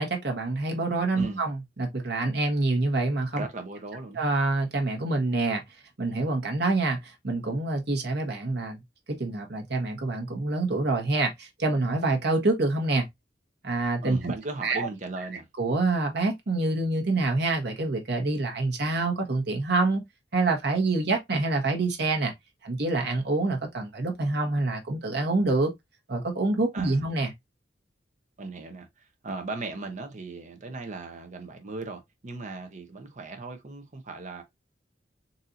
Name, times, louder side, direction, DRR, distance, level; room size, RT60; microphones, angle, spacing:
voice 1, 0.0-3.4 4.2-5.6 6.0-8.8 9.1-13.1 13.6-14.2 14.6-14.9 15.6-20.0 20.3-22.3 22.6-25.7 26.1-27.3, right 2 dB, 65° right, 1.1 m, -26 dB
voice 2, 3.4-4.2 14.0-15.5 26.7-27.0 28.4-34.4, right 3 dB, 45° right, 0.8 m, -37 dB
4.1 x 2.7 x 2.5 m
head